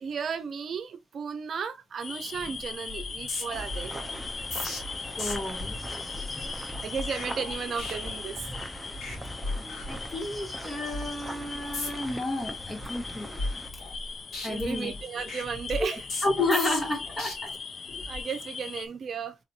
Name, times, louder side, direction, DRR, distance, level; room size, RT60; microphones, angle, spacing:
voice 1, 0.0-4.1 6.8-8.5 14.4-16.0 18.0-19.4, right 6 dB, 55° right, 0.6 m, -34 dB
sound 1, 2.0-18.9, left 5 dB, 40° left, 0.3 m, -40 dB
sound 2, 2.3-2.6 2.9-8.6 8.9-9.2 9.4-10.4 10.8-11.1 11.6-12.2 12.6-14.1 14.3-17.3 17.9-18.2, left 2 dB, 65° left, 2.4 m, -37 dB
sound 3, 3.5-13.7, right 1 dB, 10° right, 0.6 m, -41 dB
voice 2, 5.2-6.7 9.8-13.3 14.4-15.0 16.2-17.5, left 2 dB, 20° left, 1.1 m, -31 dB
4.1 x 2.6 x 2.8 m
cardioid pair, 90°, 0 cm